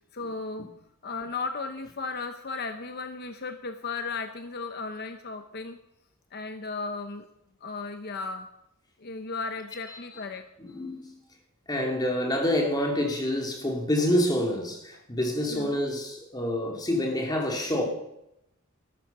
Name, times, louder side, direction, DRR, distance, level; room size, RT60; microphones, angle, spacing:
voice 1, 0.1-0.7 1.0-5.8 6.3-7.3 7.6-8.5 9.0-10.5 14.9-15.0 15.5-15.8, left 4 dB, 50° left, 0.9 m, -35 dB
voice 2, 10.6-11.1 11.7-17.9, left 1 dB, 20° left, 2.9 m, -27 dB
13.5 x 13.0 x 5.5 m
head